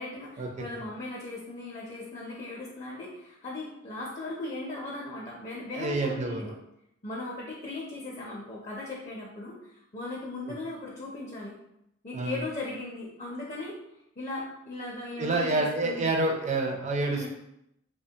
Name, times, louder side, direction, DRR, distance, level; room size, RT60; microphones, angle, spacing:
voice 1, 0.0-6.5 7.0-11.5 12.0-13.8 14.2-16.1 17.0-17.3, left 2 dB, 30° left, -4 dB, 0.4 m, -38 dB
voice 2, 5.7-6.4 12.1-12.4 15.2-17.3, right 2 dB, 35° right, 2 dB, 0.4 m, -28 dB
2.8 x 2.1 x 2.7 m, 0.80 s
head